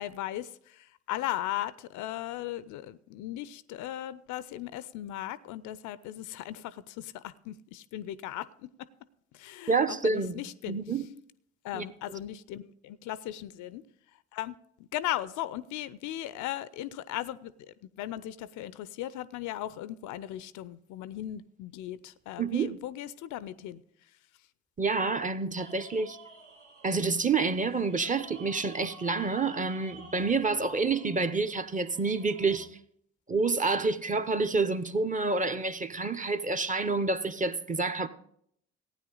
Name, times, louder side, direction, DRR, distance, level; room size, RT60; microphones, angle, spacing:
voice 1, 0.0-8.9 9.3-10.8 11.6-13.8 14.3-14.5 14.8-17.5 17.8-23.8, left 13 dB, 60° left, 0.5 m, -37 dB
voice 2, 9.7-10.4 10.7-11.1 11.7-11.8 22.4-22.8 24.8-26.2 26.8-32.7 33.3-38.1, right 4 dB, 20° right, 0.8 m, -28 dB
sound 1, 25.5-32.7, right 2 dB, 90° right, 1.2 m, -51 dB
15.5 x 9.4 x 3.9 m
figure-of-eight pair, 45°, 35 cm